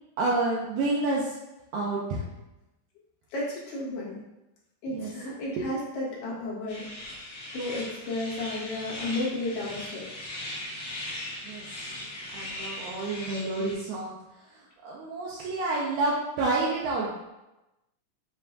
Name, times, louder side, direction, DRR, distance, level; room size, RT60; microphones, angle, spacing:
voice 1, 0.2-1.4 1.7-2.3 4.9-5.1 11.4-11.6 12.3-14.1 14.5-17.1, right 2 dB, 85° right, -4 dB, 1.7 m, -29 dB
voice 2, 3.3-4.2 4.8-6.9 7.5-10.1, left 2 dB, 75° left, -5 dB, 2.8 m, -33 dB
sound 1, 6.7-13.7, left 1 dB, 60° left, 2.4 m, -39 dB
6.6 x 3.3 x 2.3 m, 0.97 s
omnidirectional pair, 4.0 m